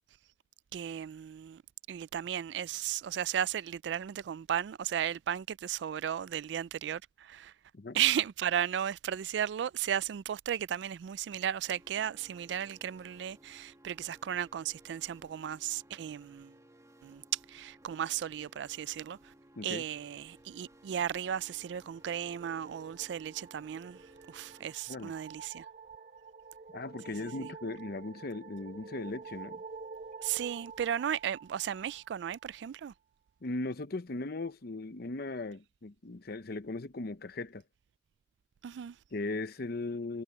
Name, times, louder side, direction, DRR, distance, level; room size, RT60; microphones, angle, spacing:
voice 1, 0.7-1.6 1.9-7.5 7.9-16.5 17.0-19.3 19.6-25.7 27.2-27.5 30.2-32.9 38.6-39.0, right 9 dB, 70° right, 0.3 m, -35 dB
sound 1, 11.7-24.7, right 1 dB, 20° right, 2.0 m, -60 dB
sound 2, 21.1-32.5, right 5 dB, 45° right, 1.0 m, -49 dB
voice 2, 26.7-29.6 33.4-37.6 39.1-40.2, left 2 dB, 55° left, 0.8 m, -38 dB
head